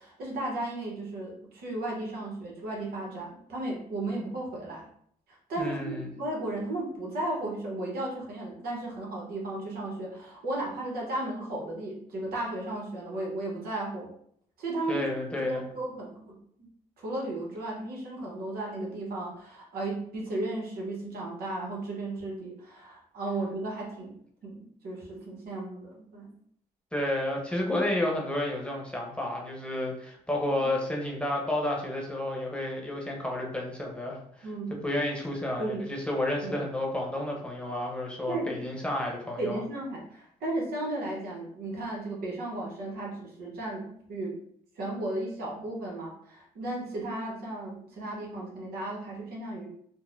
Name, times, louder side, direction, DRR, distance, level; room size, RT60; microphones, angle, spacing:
voice 1, 0.0-4.8 5.5-14.1 14.6-15.1 15.5-16.2 16.6-16.7 17.0-24.1 24.4-26.3 34.4-34.7 35.6-35.8 36.4-36.6 38.3-38.5 39.4-44.3 44.8-49.7, right 2 dB, 90° right, -2 dB, 0.9 m, -35 dB
voice 2, 5.6-6.1 14.9-15.6 26.9-39.6, left 1 dB, 5° left, -2 dB, 0.8 m, -31 dB
3.9 x 2.1 x 2.4 m, 0.67 s
cardioid pair, 75°, 15 cm